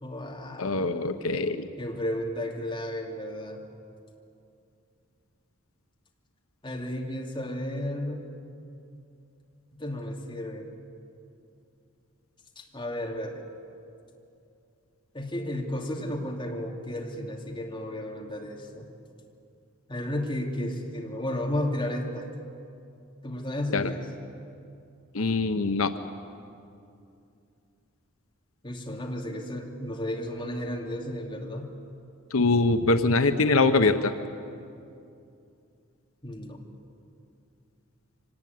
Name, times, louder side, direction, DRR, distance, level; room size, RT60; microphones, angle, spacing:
voice 1, 0.0-0.8 1.8-3.6 6.6-8.3 9.7-10.7 12.6-13.5 15.1-18.9 19.9-22.3 23.2-24.1 28.6-31.7 36.2-36.6, left 1 dB, 25° left, 0 dB, 2.6 m, -33 dB
voice 2, 0.6-1.7 23.7-23.9 25.1-25.9 32.3-34.1, left 3 dB, 90° left, 8 dB, 1.0 m, -23 dB
24.5 x 19.0 x 9.5 m, 2.6 s
head